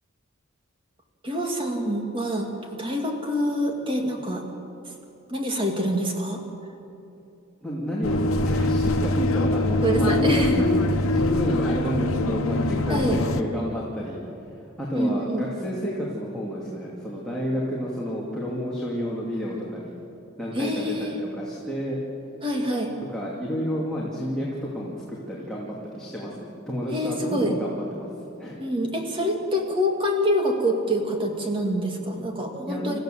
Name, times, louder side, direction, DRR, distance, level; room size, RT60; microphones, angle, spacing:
voice 1, 1.2-2.5 2.8-4.4 5.3-6.4 9.8-10.6 12.9-13.2 14.9-15.4 20.5-21.1 22.4-22.9 26.9-27.5 28.6-33.0, equal, 25° right, 2 dB, 2.5 m, -26 dB
voice 2, 7.6-14.2 14.8-19.9 20.4-21.1 21.4-22.0 23.1-28.1 28.4-28.6 32.7-33.0, equal, 5° left, -6 dB, 2.6 m, -30 dB
sound 1, 8.0-13.4, left 2 dB, 85° left, 1.1 m, -23 dB
27.5 x 15.0 x 7.8 m, 2.8 s
head